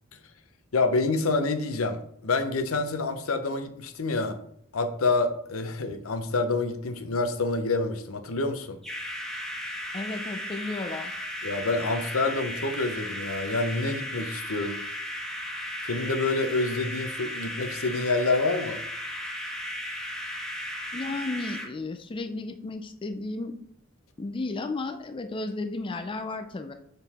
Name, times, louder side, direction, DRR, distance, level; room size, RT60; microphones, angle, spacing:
voice 1, 0.7-4.4 4.7-8.8 11.4-14.8 15.8-18.8, left 3 dB, 85° left, 8 dB, 0.8 m, -27 dB
sound 1, 8.8-21.7, equal, 5° left, 1.5 m, -35 dB
voice 2, 9.9-11.1 20.9-23.5 24.2-26.7, left 2 dB, 25° left, 7 dB, 0.4 m, -33 dB
7.0 x 3.9 x 4.2 m, 0.70 s
head